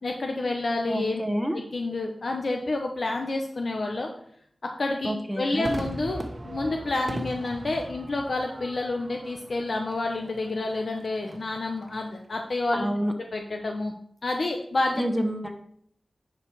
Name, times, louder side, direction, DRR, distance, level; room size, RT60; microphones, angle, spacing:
voice 1, 0.0-1.2 1.5-4.1 4.8-12.9 13.3-13.9 14.2-15.0, left 2 dB, 65° left, 2 dB, 0.9 m, -29 dB
voice 2, 0.9-1.6 5.0-5.7 12.7-13.1 15.0-15.5, equal, 5° right, 3 dB, 1.1 m, -28 dB
Crowd / Fireworks, 5.6-12.2, right 1 dB, 45° right, 1.2 m, -40 dB
10.0 x 4.8 x 4.7 m, 0.66 s
cardioid pair, 55°, 0 cm